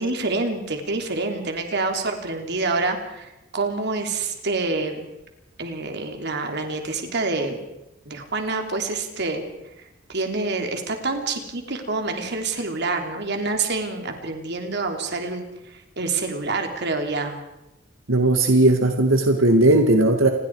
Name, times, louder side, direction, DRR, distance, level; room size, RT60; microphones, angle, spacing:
voice 1, 0.0-5.1 5.6-7.6 8.0-9.4 10.1-17.4, right 3 dB, 60° right, 4 dB, 3.4 m, -27 dB
voice 2, 18.1-20.3, right 2 dB, 85° right, 5 dB, 1.9 m, -17 dB
28.5 x 21.0 x 4.8 m, 0.94 s
head